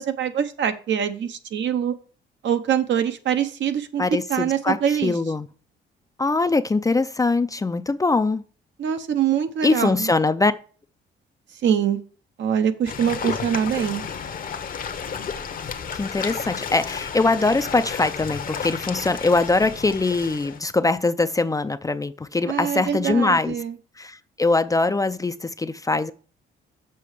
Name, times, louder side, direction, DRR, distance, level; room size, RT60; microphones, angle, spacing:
voice 1, 0.0-1.9 2.4-4.0 4.3-5.1 8.8-10.1 11.6-12.0 12.4-14.1 22.5-23.8, right 9 dB, 65° right, 0.9 m, -24 dB
voice 2, 4.0-5.5 6.2-8.4 9.6-10.5 15.9-23.6 24.0-26.1, left 3 dB, 15° left, 0.4 m, -22 dB
sound 1, 12.8-20.6, left 6 dB, 45° left, 0.8 m, -32 dB
6.8 x 5.5 x 4.9 m
cardioid pair, 90°, 20 cm